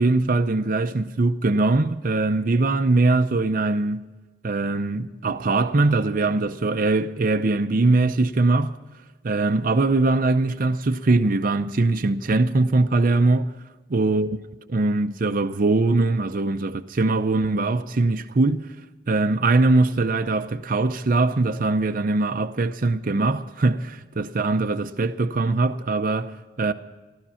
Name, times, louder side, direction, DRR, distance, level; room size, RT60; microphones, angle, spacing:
voice 1, 0.0-4.0 4.4-8.8 9.2-13.5 13.9-14.4 14.7-18.7 19.1-26.7, right 3 dB, 50° right, 0.6 m, -21 dB
15.0 x 13.0 x 5.7 m
head